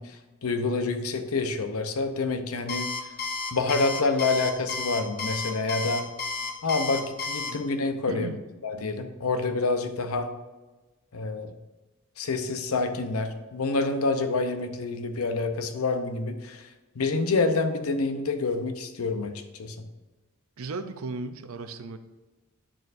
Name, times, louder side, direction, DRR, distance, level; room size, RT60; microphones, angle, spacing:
voice 1, 0.0-3.1 3.5-6.1 6.6-8.3 8.6-10.3 11.1-11.5 12.2-16.7 16.9-19.9, left 3 dB, 80° left, 8 dB, 0.7 m, -27 dB
Alarm, 2.7-7.5, left 3 dB, 45° left, 0.9 m, -32 dB
voice 2, 8.1-8.4 20.6-22.0, right 3 dB, 70° right, 10 dB, 0.5 m, -36 dB
8.9 x 6.6 x 2.6 m, 1.1 s
head